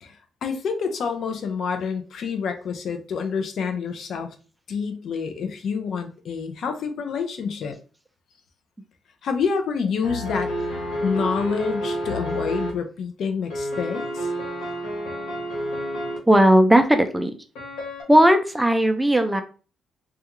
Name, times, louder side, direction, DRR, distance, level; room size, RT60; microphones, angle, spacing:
voice 1, 0.4-4.3 4.7-7.8 9.2-10.5 11.0-14.3, left 5 dB, 65° left, 6 dB, 0.5 m, -27 dB
sound 1, 10.0-12.7 13.5-16.2 17.5-18.0, equal, 85° left, 0.9 m, -29 dB
voice 2, 16.3-17.3 18.1-19.4, right 1 dB, 5° right, 6 dB, 0.4 m, -16 dB
2.3 x 2.3 x 2.9 m, 0.37 s
cardioid pair, 90°, 0 cm